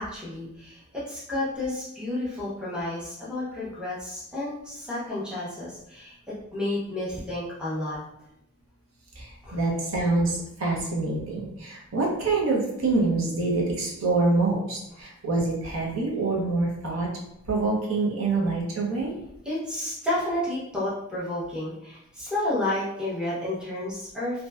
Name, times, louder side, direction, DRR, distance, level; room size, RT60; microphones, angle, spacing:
voice 1, 0.0-8.0 9.4-9.6 19.4-24.5, left 1 dB, 5° right, -8 dB, 0.6 m, -31 dB
voice 2, 9.2-17.1 17.5-19.1, right 3 dB, 65° right, -3 dB, 0.6 m, -26 dB
2.6 x 2.1 x 2.3 m, 0.82 s
head